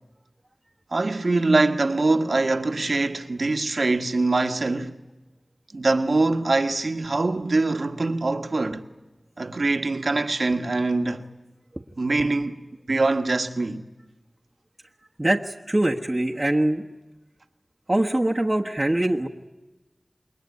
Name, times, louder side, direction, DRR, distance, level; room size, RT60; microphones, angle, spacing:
voice 1, 0.9-5.0 5.7-8.8 9.4-11.3 12.0-12.5 12.9-13.8, right 2 dB, 70° right, 1.5 m, -23 dB
voice 2, 15.2-16.8 17.9-19.3, right 1 dB, 30° right, 1.3 m, -23 dB
28.0 x 21.5 x 9.6 m
wide cardioid pair, 55°, 0 cm